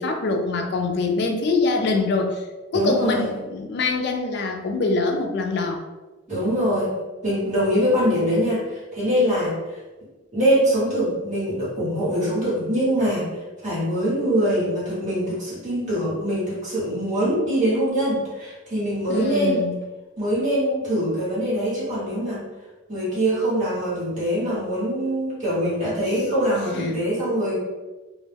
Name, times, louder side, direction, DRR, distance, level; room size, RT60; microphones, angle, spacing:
voice 1, 0.0-2.4 2.7-5.8 19.1-19.8 26.1-26.2 26.7-27.0, left 3 dB, 60° left, 3 dB, 0.4 m, -24 dB
voice 2, 2.7-3.3 6.3-6.9 7.2-9.8 10.3-13.3 13.6-19.6 20.2-22.4 22.9-27.6, equal, 40° right, -9 dB, 1.0 m, -23 dB
2.1 x 2.0 x 3.3 m, 1.2 s
head